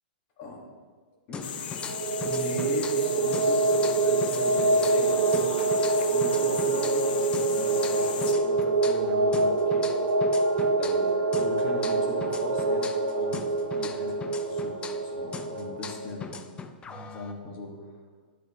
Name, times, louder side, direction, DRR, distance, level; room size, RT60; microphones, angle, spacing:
voice 1, 1.3-1.6 2.2-9.9 10.8-12.9 13.2-16.4 16.8-17.9, left 1 dB, 40° left, -1 dB, 2.0 m, -39 dB
sound 1, 1.3-3.1 3.3-7.1 7.3-11.1 11.3-15.1 15.3-17.3, left 5 dB, 20° left, 0.4 m, -40 dB
sound 2, 1.4-8.3, left 8 dB, 65° left, 0.6 m, -37 dB
sound 3, 1.8-16.1, right 3 dB, 80° right, 1.0 m, -25 dB
11.5 x 4.0 x 3.8 m, 1.5 s
hypercardioid pair, 125°, 6 cm